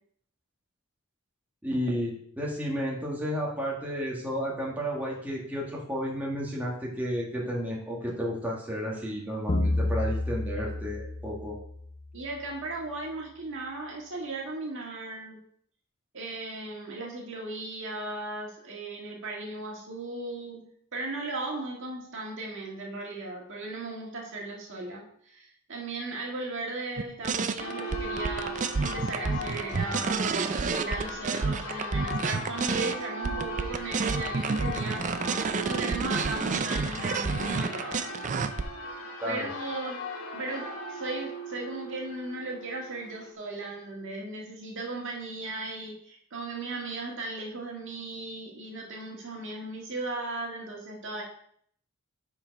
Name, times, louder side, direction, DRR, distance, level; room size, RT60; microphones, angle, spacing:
voice 1, 1.6-11.6 39.2-39.5, equal, 10° right, -4 dB, 1.6 m, -32 dB
sound 1, 9.5-12.2, left 2 dB, 50° left, 1.0 m, -30 dB
voice 2, 12.1-15.4 16.1-20.7 20.9-35.4 35.6-38.1 39.3-40.0 40.3-51.2, right 2 dB, 60° right, -1 dB, 1.9 m, -37 dB
sound 2, 27.0-32.9 33.2-38.6, right 4 dB, 35° right, 0.4 m, -29 dB
Church bell, 27.6-43.3, left 1 dB, 75° left, 1.2 m, -38 dB
7.3 x 4.8 x 5.1 m, 0.65 s
head